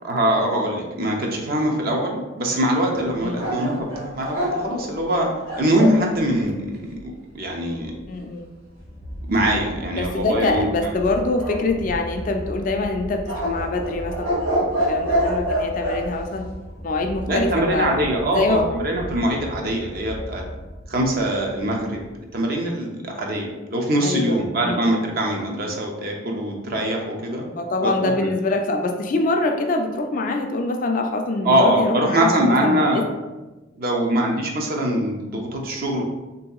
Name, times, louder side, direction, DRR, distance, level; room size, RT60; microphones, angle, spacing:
voice 1, 0.0-5.3 5.5-7.9 9.3-10.7 17.3-20.4 20.9-22.0 22.3-27.5 27.8-28.3 31.4-33.0 33.8-36.0, right 1 dB, 50° right, 1 dB, 0.5 m, -23 dB
sound 1, 3.4-6.0 11.4-12.3 13.3-16.0, equal, 90° right, 1.3 m, -25 dB
voice 2, 8.1-8.5 10.0-16.5 16.8-17.9 18.3-18.7 24.0-25.0 27.6-33.0, left 2 dB, 40° left, 4 dB, 0.3 m, -24 dB
sound 2, 8.4-22.6, equal, 65° right, 1.1 m, -37 dB
3.5 x 2.7 x 2.3 m, 1.1 s
head